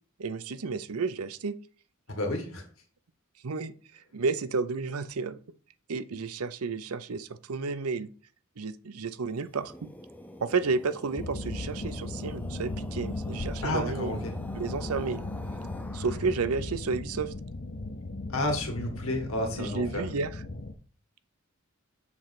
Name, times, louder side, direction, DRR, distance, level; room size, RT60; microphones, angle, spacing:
voice 1, 0.2-1.6 3.4-3.7 4.1-5.4 5.9-8.1 8.6-9.7 10.4-14.2 14.5-15.3 15.9-17.3 19.6-20.3, right 4 dB, 85° right, 0.6 m, -31 dB
voice 2, 2.1-2.6 13.6-14.3 18.3-20.0, left 1 dB, 65° left, 1.9 m, -31 dB
sound 1, 9.3-16.7, equal, 5° left, 0.5 m, -46 dB
sound 2, 11.2-20.7, left 2 dB, 50° left, 0.7 m, -37 dB
6.9 x 3.2 x 5.9 m
head